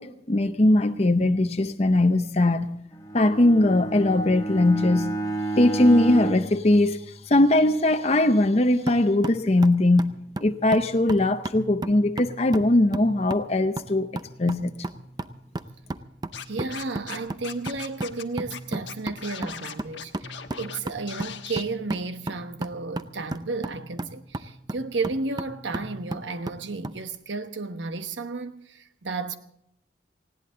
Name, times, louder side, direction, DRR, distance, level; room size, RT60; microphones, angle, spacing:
voice 1, 0.0-2.8 3.1-5.1 5.6-7.0 7.3-14.1 14.4-14.7, left 1 dB, 35° left, 0.7 m, -20 dB
Bowed string instrument, 2.9-7.6, right 2 dB, 20° left, 1.1 m, -31 dB
sound 1, 8.9-27.0, right 2 dB, 25° right, 0.6 m, -36 dB
Scratching (performance technique), 16.3-17.2 17.4-18.2 18.5-18.6 18.9-20.8 21.1-21.6, left 8 dB, 80° left, 1.2 m, -38 dB
voice 2, 16.5-29.4, right 3 dB, 85° right, 1.1 m, -33 dB
19.5 x 16.5 x 3.9 m
head